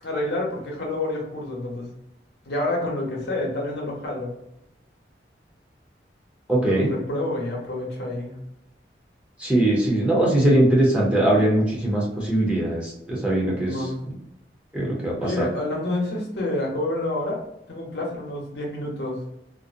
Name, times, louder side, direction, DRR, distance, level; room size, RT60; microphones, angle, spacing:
voice 1, 0.0-1.9 2.5-4.3 6.6-8.4 13.6-14.0 15.2-17.4 17.7-19.2, left 1 dB, 70° left, -2 dB, 0.8 m, -28 dB
voice 2, 6.5-6.9 9.4-13.7 14.7-15.5, right 1 dB, 5° right, -4 dB, 0.6 m, -21 dB
2.5 x 2.0 x 2.5 m, 0.83 s
head